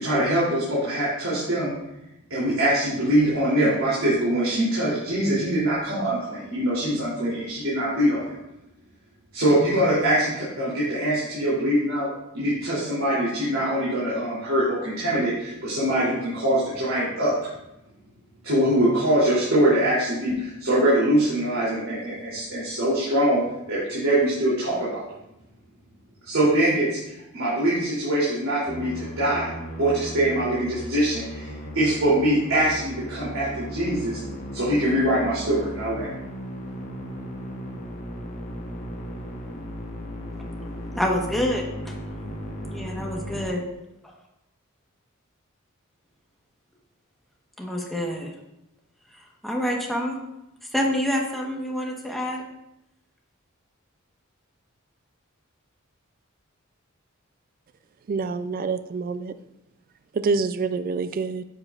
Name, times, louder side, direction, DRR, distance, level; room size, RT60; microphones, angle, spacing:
voice 1, 0.0-1.7 2.3-8.3 9.3-12.1 12.3-17.3 18.4-23.4 23.7-25.0 26.2-29.5 29.8-34.2 34.5-36.1, right 1 dB, 70° right, 3.0 m, -23 dB
Musical instrument, 28.7-43.5, equal, 35° left, 1.2 m, -36 dB
voice 2, 40.9-41.9 42.7-43.6 47.6-48.3 49.1-50.2 50.7-52.4, equal, ahead, 1.1 m, -27 dB
voice 3, 58.1-59.4 60.1-61.4, right 4 dB, 40° right, 0.3 m, -26 dB
9.7 x 7.6 x 2.4 m
head